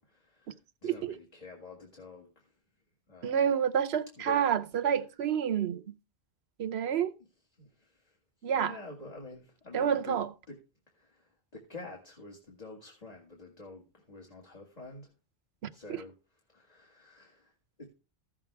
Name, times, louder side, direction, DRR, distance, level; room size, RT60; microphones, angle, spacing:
voice 1, 0.0-2.5 3.1-3.5 4.2-4.5 7.6-10.6 10.9-15.1 15.7-17.9, left 3 dB, 35° left, 2.2 m, -48 dB
voice 2, 0.8-1.1 3.2-5.9 6.6-7.1 8.4-8.7 9.7-10.3 15.6-16.0, right 8 dB, 70° right, 1.0 m, -29 dB
14.5 x 7.3 x 3.4 m
omnidirectional pair, 1.1 m